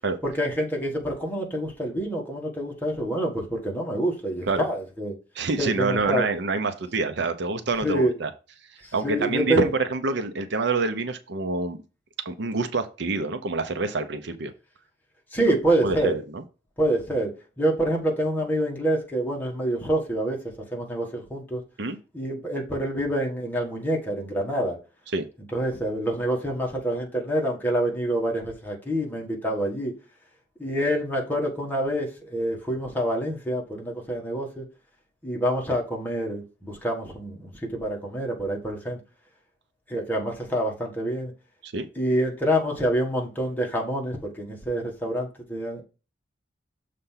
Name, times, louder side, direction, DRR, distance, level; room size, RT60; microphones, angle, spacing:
voice 1, 0.2-5.1 5.6-6.2 7.8-8.1 9.0-9.7 15.3-16.1 16.8-20.4 20.7-21.6 22.1-24.8 25.5-29.9 30.6-34.6 35.2-39.0 39.9-41.3 41.9-45.8, right 1 dB, 10° left, 1.6 m, -27 dB
voice 2, 5.4-8.3 8.9-11.8 12.2-14.5 15.8-16.4 21.8-22.0 25.1-25.2 41.6-41.9, right 3 dB, 65° right, 0.7 m, -26 dB
6.7 x 3.4 x 5.7 m
head